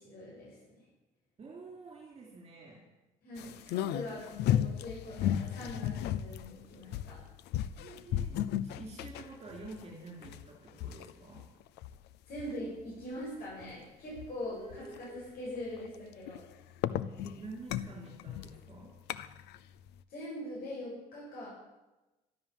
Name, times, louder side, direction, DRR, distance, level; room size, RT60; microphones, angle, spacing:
voice 1, 0.0-0.5 3.2-7.2 12.2-16.4 20.1-21.5, left 1 dB, 60° left, -7 dB, 7.8 m, -42 dB
voice 2, 1.4-2.9 7.8-11.4 14.5-15.1 17.2-18.9, right 3 dB, 35° right, -3 dB, 4.5 m, -48 dB
sound 1, 3.4-12.6 13.0-13.2 13.6-13.7 14.2-14.3 14.7-15.0 15.5-19.6 19.9-20.0, left 11 dB, 80° left, 0.7 m, -35 dB
13.0 x 13.0 x 7.4 m, 1.0 s
cardioid pair, 110°, 17 cm